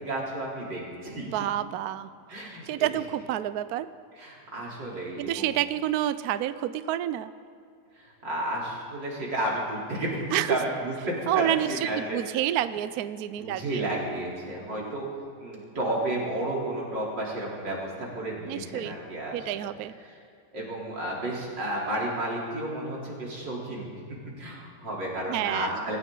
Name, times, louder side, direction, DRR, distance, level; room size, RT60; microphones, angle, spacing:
voice 1, 0.0-1.3 2.3-2.9 4.2-5.5 8.2-12.2 13.4-15.1 15.4-19.4 20.5-26.0, right 1 dB, 90° right, -4 dB, 4.2 m, -32 dB
voice 2, 1.2-2.1 2.7-3.9 5.2-7.3 10.3-10.6 11.3-14.2 14.6-14.9 18.5-19.0 19.3-19.9 25.3-25.8, right 12 dB, 70° right, 13 dB, 1.0 m, -29 dB
25.5 x 14.5 x 3.8 m, 2.4 s
omnidirectional pair, 1.9 m